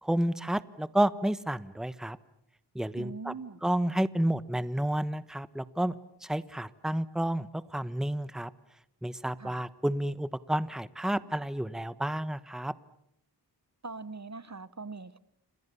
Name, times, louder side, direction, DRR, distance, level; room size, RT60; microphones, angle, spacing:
voice 1, 0.0-2.2 2.7-3.3 3.6-5.9 6.2-8.5 9.0-12.7, right 1 dB, ahead, 15 dB, 1.1 m, -30 dB
voice 2, 3.0-3.6 9.4-9.7 13.8-15.2, right 4 dB, 40° right, 17 dB, 1.1 m, -42 dB
29.0 x 27.0 x 6.9 m, 0.74 s
wide cardioid pair, 50°, 41 cm